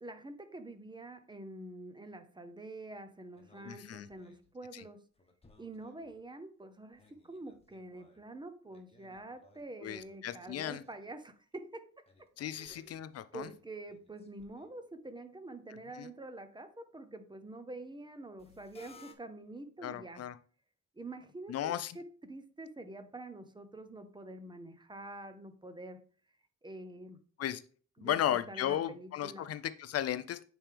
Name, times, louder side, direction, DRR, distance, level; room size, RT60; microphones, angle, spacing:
voice 1, 0.0-5.0 5.6-12.0 12.5-13.0 13.3-20.2 21.0-26.0 26.6-27.2 28.0-29.5, right 2 dB, 15° right, 0.7 m, -47 dB
sound 1, 3.3-4.5 5.1-6.3 6.7-8.4 8.7-11.2 11.5-11.6 12.1-14.9 18.4-19.1, left 3 dB, 20° left, 1.2 m, -62 dB
voice 2, 3.6-4.1 4.7-4.8 9.8-10.8 12.4-13.5 16.0-16.1 19.8-20.4 21.5-22.0 27.4-27.6 28.0-30.4, left 11 dB, 55° left, 0.6 m, -35 dB
8.8 x 3.4 x 3.4 m
cardioid pair, 90°, 30 cm